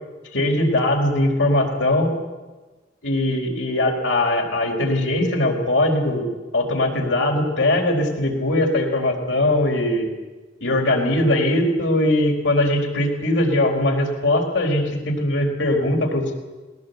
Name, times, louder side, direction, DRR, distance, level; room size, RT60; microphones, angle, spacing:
voice 1, 0.3-2.1 3.0-6.3 6.5-10.1 10.6-16.3, left 1 dB, 85° left, 1 dB, 4.5 m, -20 dB
20.5 x 18.0 x 8.1 m, 1.3 s
head